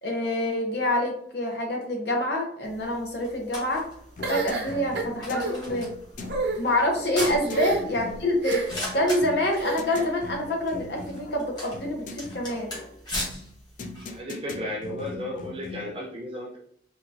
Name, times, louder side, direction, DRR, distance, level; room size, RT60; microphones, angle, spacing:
voice 1, 0.0-3.9 4.3-5.9 6.6-8.6 8.9-12.7, left 1 dB, 70° left, 1 dB, 0.8 m, -26 dB
sound 1, 2.6-14.2, left 1 dB, 25° left, 1.1 m, -40 dB
sound 2, 4.2-16.0, left 3 dB, 45° left, 0.3 m, -41 dB
sound 3, 4.2-5.5 6.2-6.6 7.5-8.0 8.4-8.9 9.5-10.1, right 3 dB, 75° right, 0.7 m, -30 dB
voice 2, 14.1-16.6, left 1 dB, 30° right, -1 dB, 0.5 m, -34 dB
3.7 x 2.4 x 2.6 m, 0.66 s
head